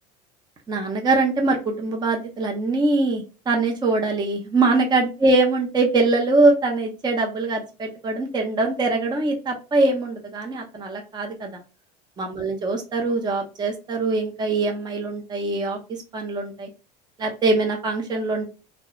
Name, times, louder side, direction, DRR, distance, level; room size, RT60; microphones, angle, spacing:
voice 1, 0.7-11.6 12.2-15.8 16.1-16.7 17.2-18.5, right 3 dB, 20° right, 2 dB, 0.6 m, -23 dB
2.2 x 2.1 x 2.8 m, 0.33 s
hypercardioid pair, 80°, 20 cm